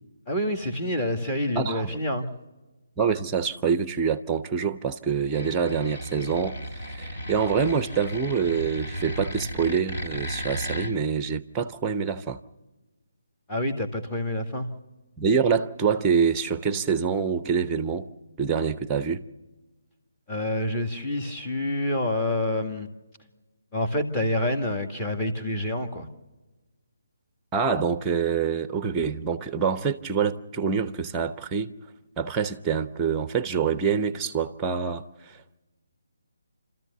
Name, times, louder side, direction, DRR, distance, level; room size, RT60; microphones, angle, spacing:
voice 1, 0.3-2.3 13.5-14.7 20.3-22.9 23.7-26.1, left 1 dB, 15° left, 1.9 m, -27 dB
voice 2, 1.6-2.0 3.0-12.4 15.2-18.1 18.4-19.2 27.5-31.7 32.2-35.6, right 6 dB, 10° right, 0.8 m, -26 dB
sound 1, 5.2-10.9, equal, 45° left, 3.7 m, -35 dB
30.0 x 14.0 x 6.8 m
figure-of-eight pair, 145°, 0 cm